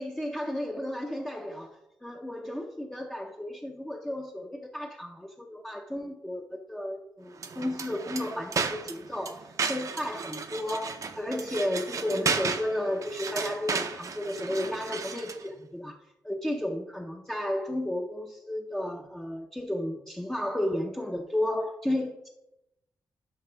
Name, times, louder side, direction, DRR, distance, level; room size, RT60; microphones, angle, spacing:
voice 1, 0.0-16.0 16.2-22.3, left 1 dB, 5° left, 0 dB, 0.6 m, -33 dB
sound 1, 7.3-15.5, right 5 dB, 45° right, 0.6 m, -34 dB
12.0 x 5.8 x 3.4 m, 0.89 s
wide cardioid pair, 165°, 8 cm